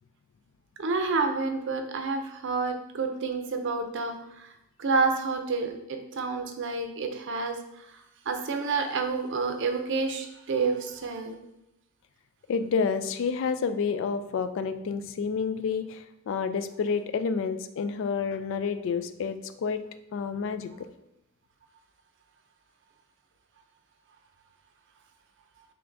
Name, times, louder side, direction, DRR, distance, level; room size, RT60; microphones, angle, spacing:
voice 1, 0.8-4.5 4.8-7.6 8.3-11.4, right 4 dB, 60° right, 6 dB, 0.6 m, -29 dB
voice 2, 12.5-19.8 20.1-20.9, left 5 dB, 65° left, 10 dB, 0.3 m, -29 dB
3.8 x 3.3 x 3.4 m, 0.89 s
head